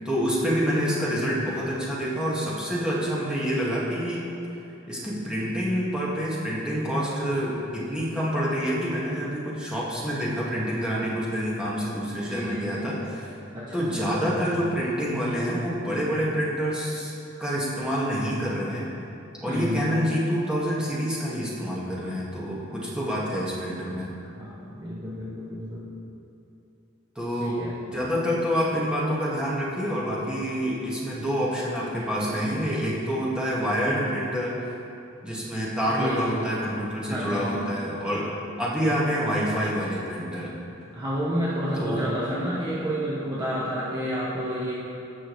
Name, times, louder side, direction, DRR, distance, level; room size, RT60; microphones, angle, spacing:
voice 1, 0.0-4.2 4.9-13.3 13.7-17.1 17.4-18.9 19.4-24.1 27.1-27.6 27.9-34.6 35.2-38.3 38.6-40.5 41.7-42.0, equal, 5° right, -7 dB, 1.7 m, -27 dB
voice 2, 12.3-12.8 13.5-14.0 19.5-19.8 24.4-25.8 27.4-27.8 36.0-36.5 37.1-37.5 40.9-44.7, equal, 20° right, -8 dB, 1.2 m, -30 dB
17.0 x 6.2 x 3.2 m, 2.8 s
head